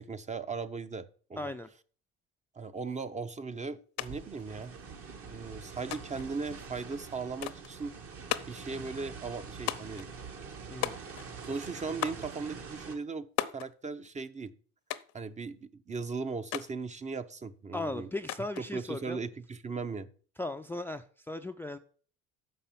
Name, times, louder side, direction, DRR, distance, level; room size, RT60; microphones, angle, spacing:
voice 1, 0.0-1.5 2.5-4.7 5.2-7.9 8.5-10.1 11.4-13.3 13.5-14.5 15.1-18.1 18.7-20.1, right 4 dB, 25° right, 0.7 m, -38 dB
voice 2, 1.4-1.7 10.7-11.0 17.7-19.2 20.4-21.8, left 2 dB, 5° left, 0.4 m, -37 dB
sound 1, 4.0-4.1 4.4-5.1 5.9-6.3 7.4-7.7 8.3-8.7 9.7-10.1 10.8-11.4 12.0-12.3 13.4-13.7 14.9-15.2 16.5-16.7 18.3-18.7, left 13 dB, 65° left, 0.8 m, -36 dB
sound 2, 4.0-13.0, right 5 dB, 50° right, 1.7 m, -45 dB
6.7 x 5.6 x 7.3 m
supercardioid pair, 90°, 29 cm